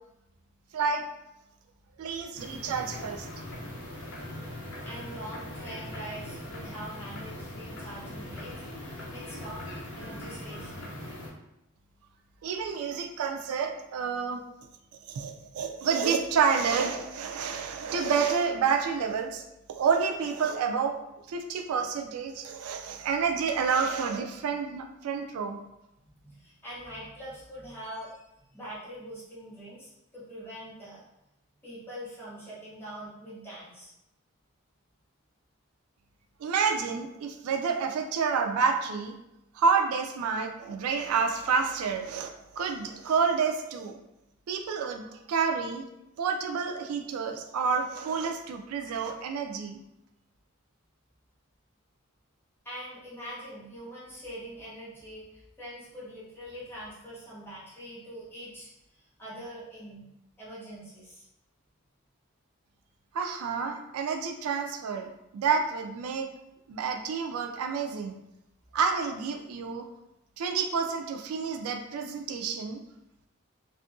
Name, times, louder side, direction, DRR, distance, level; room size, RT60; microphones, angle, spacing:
voice 1, 0.7-1.1 2.0-3.3 12.4-14.4 15.1-19.4 19.8-21.0 21.3-25.6 36.4-39.1 39.5-44.0 44.5-45.8 46.2-49.8 63.1-66.3 66.7-68.1 68.7-69.9 70.4-72.8, right 5 dB, 85° right, 5 dB, 0.3 m, -29 dB
sound 1, 2.3-11.3, left 1 dB, 55° left, 0.7 m, -41 dB
voice 2, 4.8-8.5 8.8-9.6 10.0-10.9 26.2-31.0 31.6-33.9 52.6-60.1 60.4-61.2, equal, 10° left, -9 dB, 0.8 m, -43 dB
2.6 x 2.4 x 2.5 m, 0.87 s
head